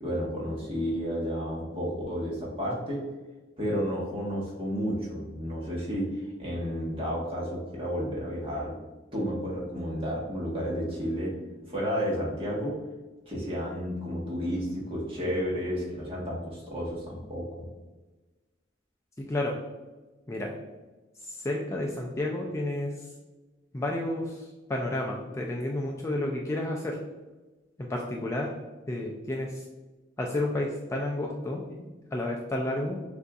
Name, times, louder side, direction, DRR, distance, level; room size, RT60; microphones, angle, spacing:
voice 1, 0.0-3.0 3.6-8.7 9.1-11.3 11.7-12.7 13.3-17.7, equal, 30° right, -4 dB, 1.2 m, -31 dB
voice 2, 19.2-19.6 20.3-20.5 21.1-23.1 23.7-27.0 27.8-28.5 28.9-29.6 30.2-33.0, left 1 dB, 15° left, -1 dB, 0.3 m, -31 dB
6.4 x 2.6 x 2.3 m, 1.2 s
head